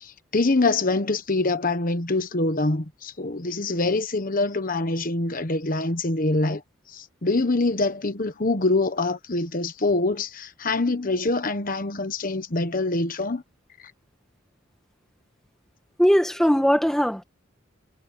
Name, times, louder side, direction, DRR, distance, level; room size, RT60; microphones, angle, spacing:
voice 1, 0.0-6.6 6.9-13.4, left 2 dB, 40° left, 1.2 m, -25 dB
voice 2, 16.0-17.2, equal, ahead, 1.8 m, -19 dB
head